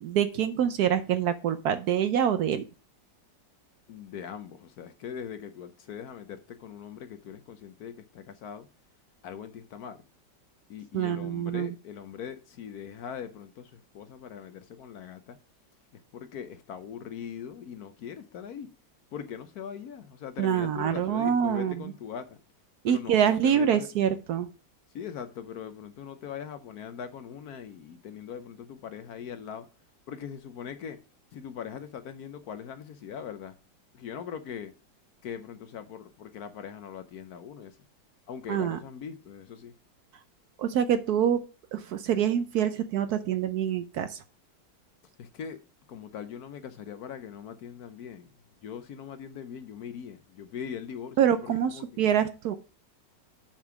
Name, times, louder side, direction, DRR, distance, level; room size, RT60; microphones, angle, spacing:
voice 1, 0.0-2.6 10.9-11.7 20.4-21.8 22.8-24.5 38.5-38.8 40.6-41.4 41.7-44.2 51.2-52.5, right 9 dB, 65° right, 1.1 m, -25 dB
voice 2, 3.9-8.7 9.2-10.0 10.7-15.4 15.9-18.7 19.1-22.4 22.8-23.9 24.9-29.7 30.1-31.0 31.3-33.6 33.9-34.7 35.2-37.8 38.3-39.7 45.2-45.6 45.9-48.3 48.6-51.9, left 8 dB, 65° left, 1.1 m, -41 dB
7.4 x 5.4 x 5.8 m
omnidirectional pair, 2.0 m